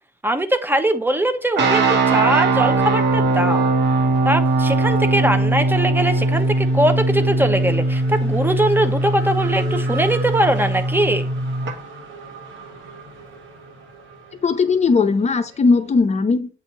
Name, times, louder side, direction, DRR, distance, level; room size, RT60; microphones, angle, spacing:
voice 1, 0.2-3.7 4.2-11.3, right 1 dB, 10° right, 8 dB, 0.8 m, -21 dB
Race car auto racing / Accelerating revving vroom, 1.0-2.0 2.3-16.0, right 1 dB, 85° right, 1.7 m, -39 dB
sound 1, 1.6-11.7, right 2 dB, 65° right, 1.4 m, -20 dB
voice 2, 14.4-16.5, left 4 dB, 35° left, 8 dB, 0.8 m, -18 dB
7.9 x 2.7 x 4.5 m, 0.37 s
cardioid pair, 90°, 20 cm